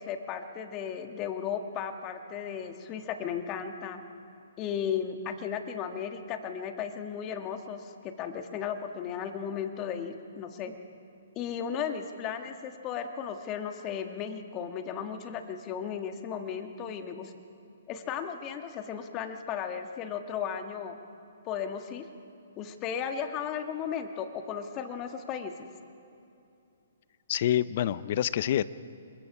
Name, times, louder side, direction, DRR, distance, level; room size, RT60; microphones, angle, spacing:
voice 1, 0.0-4.0 4.6-10.7 11.3-17.3 17.9-21.0 21.4-22.0 22.6-25.6, left 7 dB, 25° left, 6 dB, 1.6 m, -35 dB
voice 2, 27.3-28.6, left 11 dB, 50° left, 17 dB, 0.6 m, -27 dB
26.5 x 21.5 x 4.9 m, 2.7 s
hypercardioid pair, 135°, 0 cm